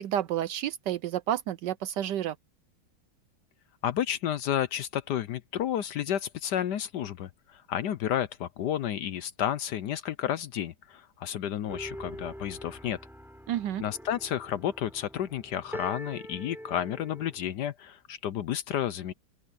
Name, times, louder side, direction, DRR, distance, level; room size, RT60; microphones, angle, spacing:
voice 1, 0.0-2.4 13.5-13.8, right 11 dB, 70° right, 1.1 m, -30 dB
voice 2, 3.8-13.0 13.8-19.1, left 10 dB, 65° left, 1.1 m, -31 dB
sound 1, 11.7-17.5, equal, ahead, 6.6 m, -44 dB
open air
omnidirectional pair, 2.2 m